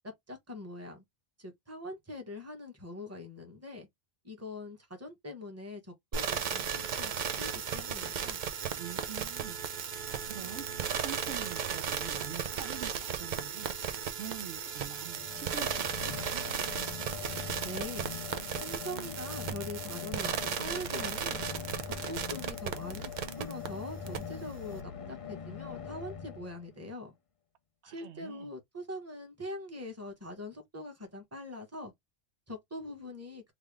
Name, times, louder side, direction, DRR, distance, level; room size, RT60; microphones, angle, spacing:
voice 1, 0.3-1.0 1.4-3.9 4.2-8.4 17.6-18.1 18.6-21.4 21.9-23.1 23.4-27.1 27.8-31.9 32.5-33.4, left 1 dB, 15° right, 1.0 m, -43 dB
sound 1, 6.1-23.7 24.1-24.2, right 7 dB, 55° right, 0.6 m, -35 dB
voice 2, 8.7-9.6 10.1-10.7 11.0-13.7 14.2-16.5 27.8-28.5, right 9 dB, 90° right, 0.9 m, -45 dB
Bass guitar, 10.3-16.5, right 2 dB, 35° right, 1.1 m, -57 dB
sound 2, 15.0-26.9, left 6 dB, 40° left, 0.6 m, -42 dB
3.4 x 2.4 x 3.4 m
omnidirectional pair, 1.1 m